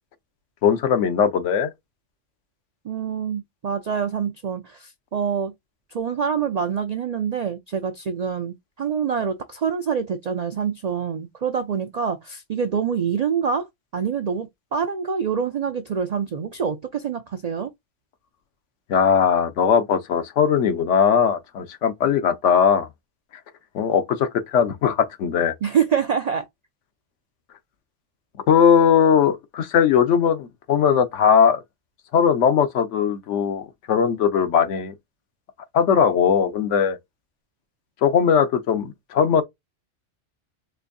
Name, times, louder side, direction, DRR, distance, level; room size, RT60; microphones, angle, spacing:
voice 1, 0.6-1.7 18.9-22.9 23.7-25.5 28.5-31.6 32.1-34.9 35.7-37.0 38.0-39.4, left 7 dB, 80° left, 1.0 m, -19 dB
voice 2, 2.8-5.5 5.9-13.7 13.9-17.7 25.6-26.5, right 7 dB, 65° right, 0.4 m, -26 dB
4.4 x 2.5 x 2.6 m
omnidirectional pair, 1.2 m